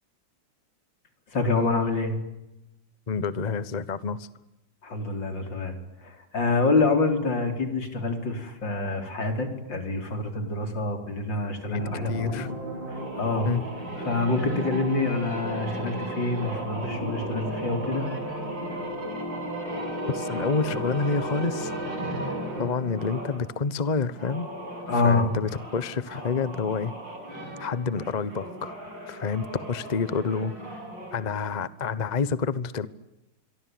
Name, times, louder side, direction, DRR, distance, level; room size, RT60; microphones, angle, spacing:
voice 1, 1.3-2.1 4.8-5.8 6.0-12.5 12.9-13.5 14.0-18.1 24.9-25.3, left 3 dB, 80° left, 6 dB, 5.0 m, -26 dB
voice 2, 3.1-4.3 11.7-12.6 13.4-13.6 20.1-21.7 22.6-24.5 24.9-26.9 27.6-28.7 29.1-30.8 31.1-32.9, left 5 dB, 30° left, 16 dB, 0.9 m, -28 dB
sound 1, 11.7-23.4 24.1-31.2, right 1 dB, 85° right, 8.3 m, -35 dB
27.0 x 23.5 x 9.4 m, 0.94 s
omnidirectional pair, 2.0 m